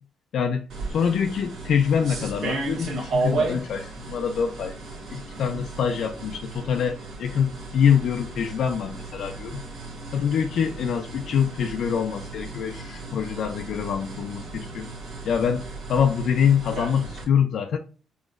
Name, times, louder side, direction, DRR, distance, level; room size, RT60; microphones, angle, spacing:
voice 1, 0.3-4.8 5.1-9.6 10.1-14.9 15.3-17.8, left 7 dB, 65° left, 0.4 m, -25 dB
sound 1, 0.7-17.2, right 3 dB, 75° right, 1.4 m, -34 dB
4.0 x 2.9 x 2.4 m
cardioid pair, 90°, 0 cm